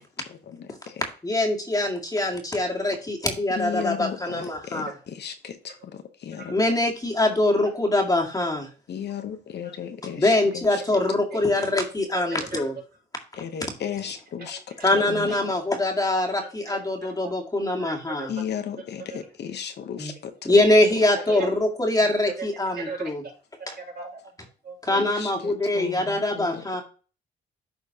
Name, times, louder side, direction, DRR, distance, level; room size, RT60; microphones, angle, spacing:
voice 1, 0.5-1.0 3.6-6.6 8.9-10.8 13.3-14.6 14.9-15.3 18.3-20.7 24.9-26.6, left 8 dB, 60° left, 8 dB, 0.9 m, -35 dB
voice 2, 1.2-4.9 6.5-8.7 10.2-12.8 13.6-13.7 14.8-18.3 20.0-20.1 20.4-23.2 24.8-26.8, left 1 dB, 20° left, 1 dB, 1.9 m, -23 dB
voice 3, 11.3-11.7 12.1-12.6 14.4-14.9 15.3-15.4 16.4-17.3 17.8-18.3 19.1-19.2 21.1-21.5 22.0-22.1 22.8-23.3 23.8-24.2 24.6-25.0, right 4 dB, 55° right, -1 dB, 2.9 m, -39 dB
12.0 x 4.4 x 2.8 m, 0.38 s
cardioid pair, 90°, 20 cm